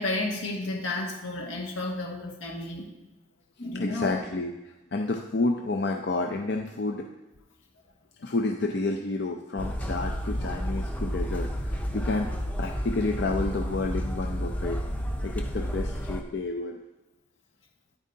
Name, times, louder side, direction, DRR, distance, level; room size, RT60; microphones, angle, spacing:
voice 1, 0.0-2.9 3.6-4.2, left 2 dB, 85° left, -1 dB, 1.8 m, -32 dB
voice 2, 3.7-7.1 8.2-12.3 12.6-14.8 15.2-16.8, left 3 dB, 55° left, 2 dB, 0.5 m, -30 dB
sound 1, 9.6-16.2, equal, 10° left, 0.6 m, -31 dB
9.4 x 8.9 x 2.8 m, 0.99 s
head